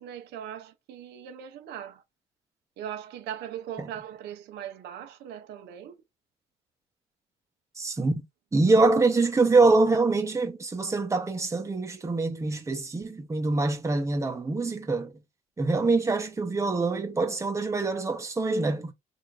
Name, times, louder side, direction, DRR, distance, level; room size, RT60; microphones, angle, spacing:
voice 1, 0.0-2.0 2.8-5.9, right 9 dB, 85° right, 1.2 m, -39 dB
voice 2, 7.8-8.2 8.5-15.1 15.6-18.9, right 3 dB, 15° right, 1.1 m, -24 dB
4.6 x 3.0 x 2.7 m
cardioid pair, 110°, 17 cm